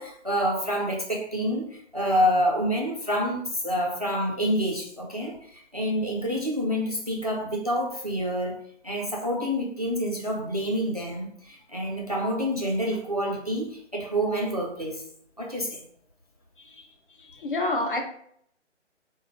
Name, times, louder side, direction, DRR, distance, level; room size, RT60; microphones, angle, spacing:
voice 1, 0.0-8.6 8.8-15.0 15.4-15.8, equal, 35° right, -1 dB, 0.4 m, -27 dB
voice 2, 17.2-18.0, left 2 dB, 45° left, 2 dB, 0.7 m, -28 dB
3.7 x 2.1 x 3.1 m, 0.64 s
figure-of-eight pair, 155°, 36 cm